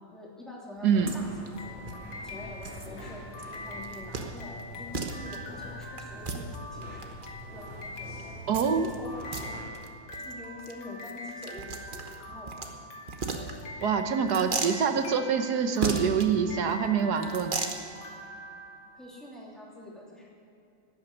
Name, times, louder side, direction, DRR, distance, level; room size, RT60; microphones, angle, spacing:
voice 1, 0.1-1.6 2.2-3.3 3.6-7.1 7.5-8.3 8.6-9.2 10.2-12.8 18.9-20.3, left 2 dB, ahead, -4 dB, 2.9 m, -45 dB
sound 1, 0.8-9.6, equal, 30° left, 4.0 m, -45 dB
voice 2, 0.8-1.1 8.5-8.9 13.8-17.6, right 6 dB, 60° right, 7 dB, 1.4 m, -25 dB
sound 2, 1.1-1.2 1.4-1.5 1.9-2.0 2.6-2.9 3.4-3.6 3.8-4.3 4.6-4.7 4.9-5.4 6.0-7.3 8.5-8.9 9.2-9.4 9.7-9.9 10.1-10.3 10.6-10.7 11.0-12.7 13.1-13.8 14.3-14.8 15.8-16.3 17.2-17.8, right 4 dB, 35° right, 0.9 m, -34 dB
sound 3, 1.5-19.2, left 1 dB, 65° left, 2.2 m, -44 dB
13.0 x 8.7 x 9.7 m, 2.7 s
omnidirectional pair, 2.1 m